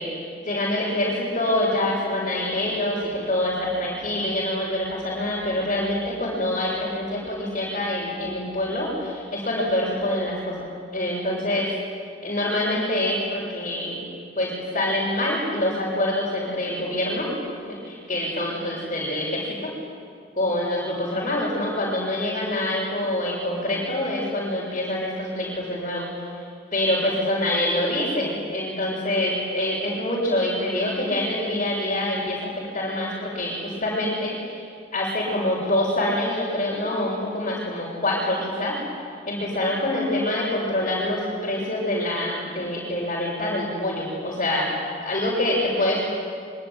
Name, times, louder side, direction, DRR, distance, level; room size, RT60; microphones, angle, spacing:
voice 1, 0.0-10.7 10.9-11.7 12.2-14.0 14.4-17.3 17.7-19.7 20.4-26.3 26.7-32.5 32.7-34.6 34.9-38.8 39.3-44.7 45.0-46.0, left 1 dB, 40° left, -6 dB, 6.9 m, -25 dB
25.5 x 24.5 x 9.3 m, 2.3 s
head